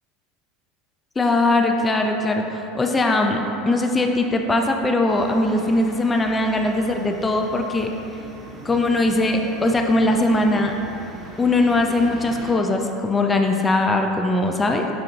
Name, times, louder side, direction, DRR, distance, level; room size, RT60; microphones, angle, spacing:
voice 1, 1.2-7.9 8.6-10.7 11.4-14.9, left 2 dB, 20° left, 3 dB, 0.3 m, -20 dB
sound 1, 5.1-12.5, right 1 dB, 25° right, 0.7 m, -41 dB
5.9 x 2.8 x 2.4 m, 3.0 s
hypercardioid pair, 80°, 0 cm